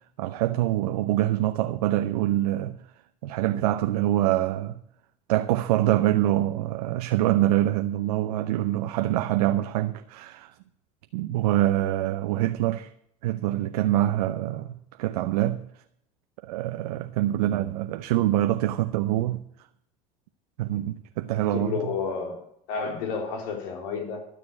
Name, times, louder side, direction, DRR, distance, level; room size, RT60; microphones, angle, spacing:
voice 1, 0.2-2.8 3.2-4.8 5.3-10.6 11.1-12.9 13.2-15.6 16.4-19.4 20.6-21.9, right 14 dB, 85° right, 0.7 m, -25 dB
voice 2, 21.3-22.4 22.7-24.3, left 5 dB, 75° left, 3.6 m, -31 dB
12.5 x 6.9 x 8.5 m
supercardioid pair, 95°, 19 cm